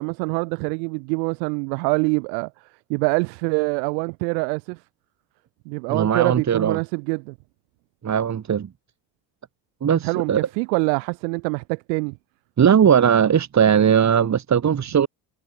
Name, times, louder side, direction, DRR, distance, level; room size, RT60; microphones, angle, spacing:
voice 1, 0.0-2.5 2.9-4.8 5.7-7.3 10.0-12.2, right 35 dB, 80° right, 2.8 m, -25 dB
voice 2, 5.9-6.8 8.0-8.7 9.8-10.4 12.6-15.1, right 8 dB, 35° right, 4.7 m, -18 dB
supercardioid pair, 110°, 50 cm